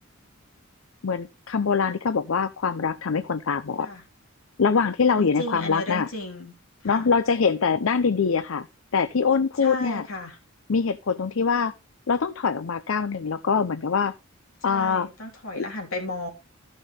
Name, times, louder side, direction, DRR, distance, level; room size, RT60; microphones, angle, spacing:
voice 1, 1.0-3.9 4.6-6.1 6.8-8.7 8.9-10.1 10.7-11.7 12.1-14.1 14.6-15.1 15.6-15.7, left 5 dB, 70° left, 0.6 m, -23 dB
voice 2, 5.1-6.5 6.8-7.1 9.6-10.4 14.6-16.3, left 1 dB, 85° left, 3.6 m, -34 dB
14.5 x 6.1 x 3.6 m
head